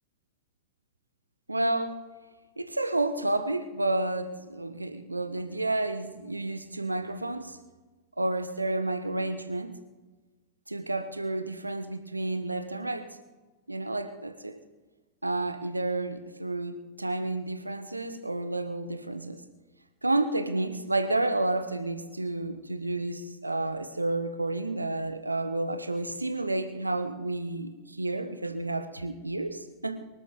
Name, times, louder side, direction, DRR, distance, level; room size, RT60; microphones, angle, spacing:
voice 1, 1.5-2.0 2.6-7.6 8.2-9.8 10.7-13.1 13.7-14.6 15.2-19.4 20.0-30.0, right 2 dB, 85° right, 10 dB, 1.2 m, -30 dB
24.0 x 12.5 x 3.9 m, 1.2 s
figure-of-eight pair, 90°, 0 cm